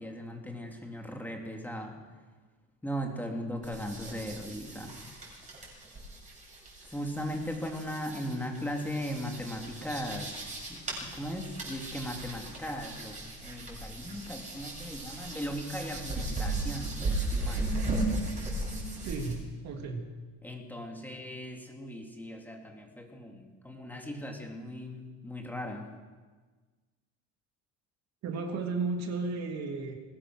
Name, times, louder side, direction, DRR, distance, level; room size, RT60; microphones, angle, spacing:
voice 1, 0.0-1.9 2.8-4.9 6.9-10.4 10.7-17.7 20.4-25.9, equal, 5° left, 2 dB, 2.6 m, -38 dB
sound 1, 3.6-19.3, right 2 dB, 20° right, 7.3 m, -37 dB
voice 2, 19.0-19.4 19.6-20.1 28.2-29.9, right 4 dB, 50° right, 4 dB, 3.0 m, -33 dB
22.0 x 19.0 x 6.3 m, 1.4 s
cardioid pair, 145°, 34 cm